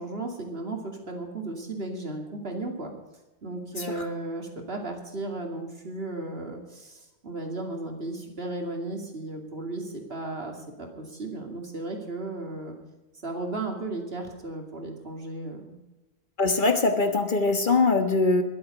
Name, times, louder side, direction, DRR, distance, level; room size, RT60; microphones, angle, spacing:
voice 1, 0.0-2.9 3.4-12.8 13.2-15.8, right 2 dB, 60° right, 2 dB, 2.8 m, -35 dB
voice 2, 16.4-18.4, left 3 dB, 50° left, 6 dB, 1.5 m, -22 dB
22.0 x 8.0 x 5.2 m, 1.0 s
omnidirectional pair, 1.1 m